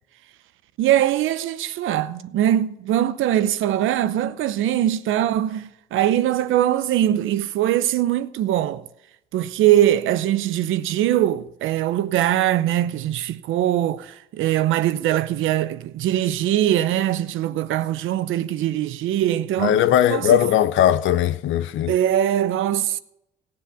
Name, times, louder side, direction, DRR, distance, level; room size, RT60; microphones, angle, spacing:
voice 1, 0.8-8.8 9.3-19.8 20.1-20.4 21.9-23.0, right 12 dB, 85° right, 0.8 m, -22 dB
voice 2, 19.6-21.9, left 11 dB, 75° left, 0.7 m, -19 dB
18.0 x 7.7 x 6.9 m
cardioid pair, 90°, 20 cm